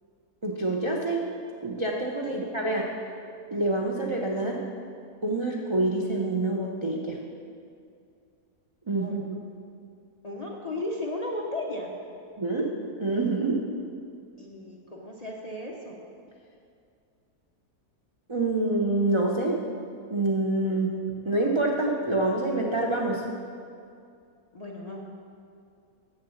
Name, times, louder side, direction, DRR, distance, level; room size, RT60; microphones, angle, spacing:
voice 1, 0.4-1.3 1.6-2.9 3.5-4.6 5.2-7.2 8.9-9.2 12.4-12.7 13.0-13.6 18.3-19.6 20.1-21.0 21.2-23.2, right 2 dB, 50° right, -2 dB, 0.3 m, -26 dB
voice 2, 10.2-11.9 14.4-16.0 24.5-25.0, left 1 dB, 40° left, -2 dB, 0.6 m, -35 dB
7.1 x 6.7 x 7.0 m, 2.4 s
omnidirectional pair, 1.6 m